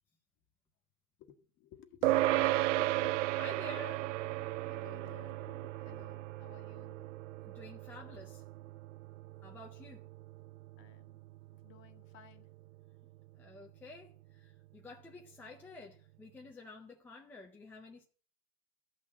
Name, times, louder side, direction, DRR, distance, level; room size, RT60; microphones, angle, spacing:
voice 1, 1.2-3.4 4.6-7.1 10.8-11.2 11.6-12.5, left 9 dB, 25° left, 1.3 m, -56 dB
sound 1, 2.0-11.7, right 16 dB, 55° right, 0.5 m, -35 dB
voice 2, 3.4-4.1 7.4-8.4 9.4-10.1 13.4-18.0, left 2 dB, 5° left, 0.5 m, -50 dB
13.0 x 6.3 x 8.5 m
supercardioid pair, 155°, 44 cm